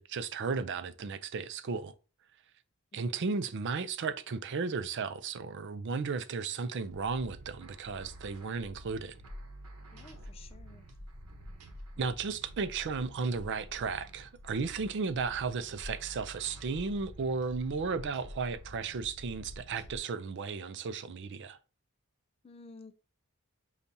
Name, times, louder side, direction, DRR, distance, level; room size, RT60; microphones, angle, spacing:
voice 1, 0.0-1.9 2.9-9.1 12.0-21.6, right 4 dB, 55° right, 0.4 m, -34 dB
sound 1, 6.9-20.0, equal, 90° right, 1.0 m, -48 dB
voice 2, 9.9-10.8 22.4-22.9, left 3 dB, 25° left, 0.3 m, -52 dB
6.8 x 2.4 x 2.7 m
head